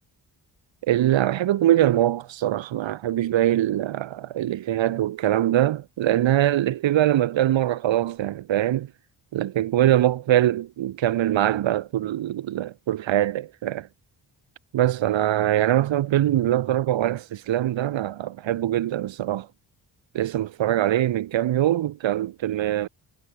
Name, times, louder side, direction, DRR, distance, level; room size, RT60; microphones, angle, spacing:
voice 1, 0.9-8.9 9.3-13.9 14.7-19.5 20.1-22.9, right 12 dB, 85° right, 1.6 m, -23 dB
cardioid pair, 65°, 44 cm